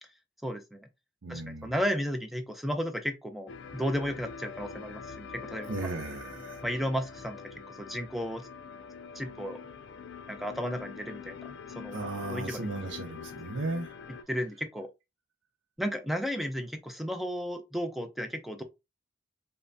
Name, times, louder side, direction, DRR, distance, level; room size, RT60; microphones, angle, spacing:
voice 1, 0.4-0.9 1.3-5.7 6.6-7.4 7.7-8.5 9.1-9.6 10.3-12.0 12.3-12.6 14.3-14.9 15.8-18.6, equal, ahead, 0.3 m, -33 dB
voice 2, 1.2-1.7 5.6-6.6 11.9-13.9, right 2 dB, 90° right, 0.6 m, -36 dB
sound 1, 3.5-14.2, left 6 dB, 70° left, 0.4 m, -44 dB
5.3 x 2.1 x 2.6 m
head